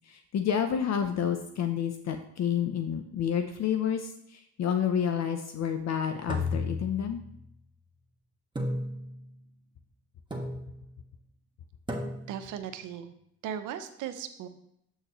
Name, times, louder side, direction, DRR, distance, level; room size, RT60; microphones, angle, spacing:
voice 1, 0.1-7.2, left 8 dB, 60° left, 7 dB, 0.7 m, -29 dB
sound 1, 6.3-7.5 8.6-9.4 10.3-10.9 11.9-12.5, left 2 dB, 15° right, 1.3 m, -34 dB
voice 2, 12.3-13.1 13.4-14.5, right 9 dB, 85° right, 9 dB, 0.8 m, -37 dB
8.0 x 6.5 x 3.0 m, 0.76 s
cardioid pair, 90°, 30 cm